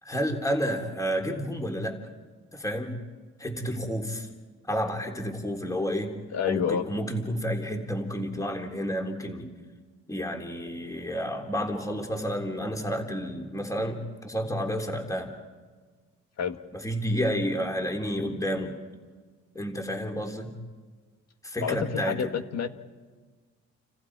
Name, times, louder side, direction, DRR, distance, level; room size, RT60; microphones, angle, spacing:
voice 1, 0.0-2.0 2.5-2.9 3.4-4.3 4.7-6.1 6.5-9.5 10.1-15.3 16.7-18.7 19.5-20.5 21.4-22.2, equal, 10° left, 3 dB, 3.4 m, -30 dB
voice 2, 6.3-6.8 16.4-16.6 21.6-22.7, left 7 dB, 60° left, 8 dB, 1.8 m, -28 dB
30.0 x 29.0 x 4.8 m, 1.4 s
cardioid pair, 90°, 30 cm